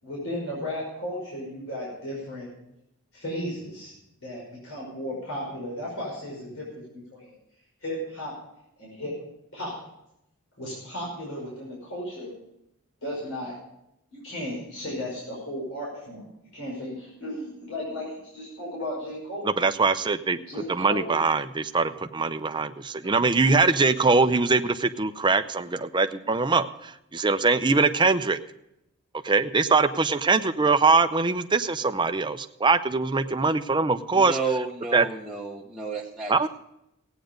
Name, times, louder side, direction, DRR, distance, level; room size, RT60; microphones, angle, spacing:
voice 1, 0.0-2.5 3.1-3.9 4.2-6.7 6.9-7.4 7.8-8.3 8.8-9.1 9.5-9.7 10.6-12.3 13.0-13.5 14.1-16.3 16.5-19.5 20.5-21.1, left 1 dB, 70° left, -4 dB, 5.5 m, -35 dB
voice 2, 19.4-20.4 20.7-28.4 29.2-34.4 34.9-35.1 36.3-36.5, right 4 dB, 20° right, 9 dB, 0.6 m, -22 dB
voice 3, 34.1-36.5, right 4 dB, ahead, -4 dB, 0.9 m, -31 dB
16.0 x 9.1 x 5.2 m, 0.82 s
head